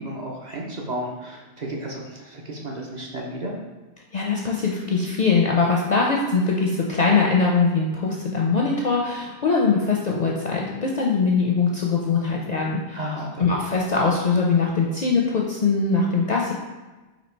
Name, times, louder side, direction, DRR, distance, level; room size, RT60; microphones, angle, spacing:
voice 1, 0.0-3.6 12.9-13.5, right 1 dB, 45° right, -1 dB, 0.7 m, -33 dB
voice 2, 4.1-13.0 13.4-16.5, left 4 dB, 55° left, -2 dB, 0.5 m, -22 dB
4.1 x 2.8 x 4.4 m, 1.2 s
omnidirectional pair, 1.1 m